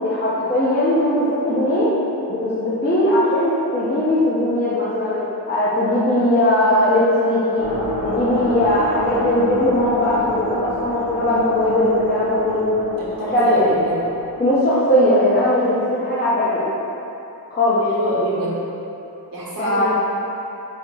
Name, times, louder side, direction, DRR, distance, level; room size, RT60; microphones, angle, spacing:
voice 1, 0.0-1.9 2.3-5.2 5.5-7.7 8.0-12.7 13.2-13.8 14.4-16.7 17.5-17.8 19.6-19.9, left 1 dB, 25° left, -10 dB, 0.6 m, -19 dB
sound 1, 7.6-14.4, equal, 75° left, 1.1 m, -29 dB
voice 2, 13.0-14.1 17.9-18.6 19.3-19.9, right 1 dB, 60° right, -7 dB, 1.0 m, -26 dB
4.2 x 2.9 x 3.6 m, 3.0 s
wide cardioid pair, 140°, 39 cm